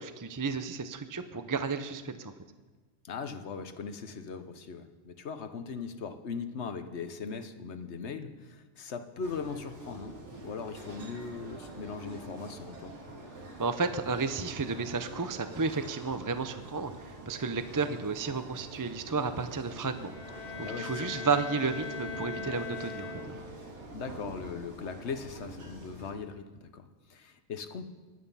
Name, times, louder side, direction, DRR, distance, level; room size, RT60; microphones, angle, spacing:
voice 1, 0.0-2.3 13.6-23.4, right 4 dB, 25° right, 10 dB, 0.5 m, -32 dB
voice 2, 3.0-10.2 10.4-12.9 20.6-21.1 23.9-27.9, left 5 dB, 70° left, 9 dB, 1.2 m, -39 dB
sound 1, 9.2-26.1, right 2 dB, 75° right, 2.3 m, -46 dB
Bowed string instrument, 20.0-23.6, left 5 dB, 50° left, 3.2 m, -40 dB
22.5 x 9.2 x 5.5 m, 1.3 s
omnidirectional pair, 1.2 m